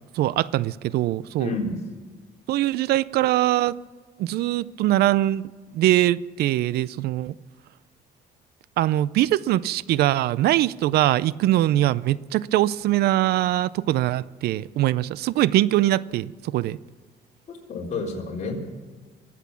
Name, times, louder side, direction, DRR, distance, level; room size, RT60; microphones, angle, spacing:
voice 1, 0.1-1.5 2.5-3.8 4.2-5.4 5.7-7.3 8.8-16.8, right 14 dB, 70° right, 20 dB, 0.4 m, -22 dB
voice 2, 1.4-1.8 17.5-18.5, left 3 dB, 45° left, -1 dB, 4.1 m, -30 dB
23.5 x 8.3 x 7.0 m, 1.4 s
cardioid pair, 110°, 17 cm